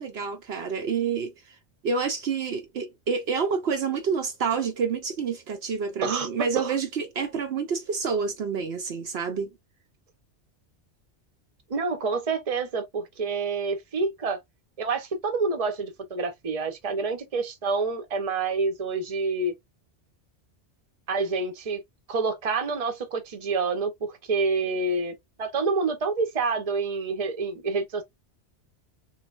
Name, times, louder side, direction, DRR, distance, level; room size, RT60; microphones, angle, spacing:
voice 1, 0.0-1.6 1.8-9.5, right 5 dB, 65° right, 0.9 m, -28 dB
voice 2, 11.7-14.4 14.8-19.5 21.1-21.8 22.1-28.0, right 4 dB, 35° right, 0.8 m, -28 dB
3.8 x 3.2 x 2.4 m
omnidirectional pair, 1.2 m